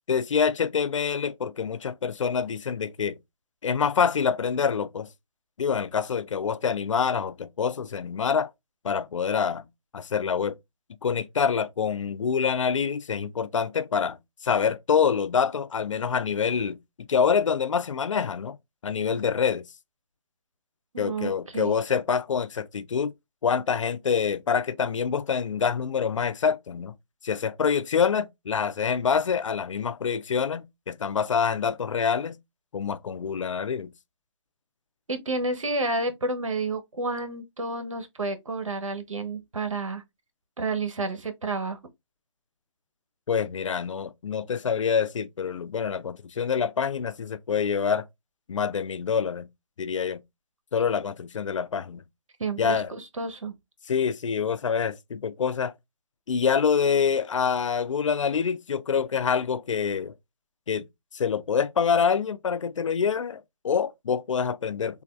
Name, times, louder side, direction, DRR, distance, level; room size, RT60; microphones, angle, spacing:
voice 1, 0.1-3.2 3.6-5.1 5.6-8.5 8.8-9.7 9.9-10.6 11.0-14.2 14.4-16.8 17.1-18.6 18.8-19.6 21.0-23.1 23.4-26.9 27.2-32.4 32.7-33.9 43.3-48.1 48.5-49.5 49.8-50.2 50.7-52.0 52.6-52.9 53.9-55.7 56.3-60.1 60.7-60.9 61.1-65.0, left 6 dB, 75° left, 0.4 m, -26 dB
voice 2, 20.9-21.7 35.1-40.0 40.6-41.8 52.4-53.5, right 3 dB, 90° right, 0.8 m, -30 dB
3.4 x 2.3 x 2.2 m
hypercardioid pair, 160°, 16 cm